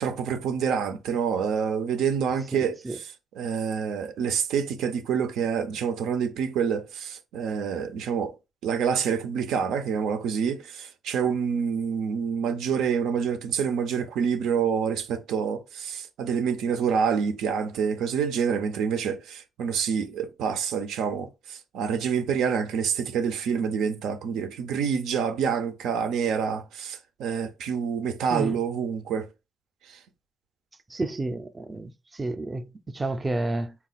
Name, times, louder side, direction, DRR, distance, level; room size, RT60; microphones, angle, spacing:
voice 1, 0.0-8.4 8.6-29.3 29.9-30.0, right 7 dB, 85° right, 0.6 m, -27 dB
voice 2, 2.5-3.0 28.3-28.6 30.9-33.8, right 2 dB, 20° right, 0.5 m, -31 dB
4.1 x 2.3 x 3.9 m
cardioid pair, 115°, 0 cm